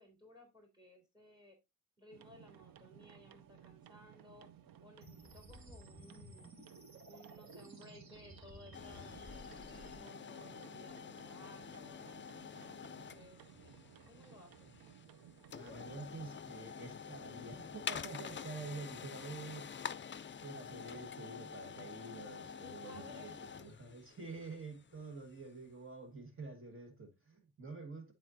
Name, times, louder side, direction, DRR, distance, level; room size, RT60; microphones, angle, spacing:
voice 1, 0.0-1.6 2.0-4.5 4.8-6.5 7.0-13.4 14.0-14.7 22.6-23.5, left 1 dB, 15° right, 3.6 m, -59 dB
sound 1, 2.1-15.9, right 10 dB, 85° right, 0.6 m, -59 dB
sound 2, 5.0-10.0, equal, 55° right, 2.8 m, -55 dB
sound 3, 8.7-25.6, left 7 dB, 35° left, 0.5 m, -48 dB
voice 2, 15.5-19.8 20.3-28.1, right 3 dB, 40° right, 1.7 m, -48 dB
11.5 x 4.4 x 2.7 m
cardioid pair, 75°, 34 cm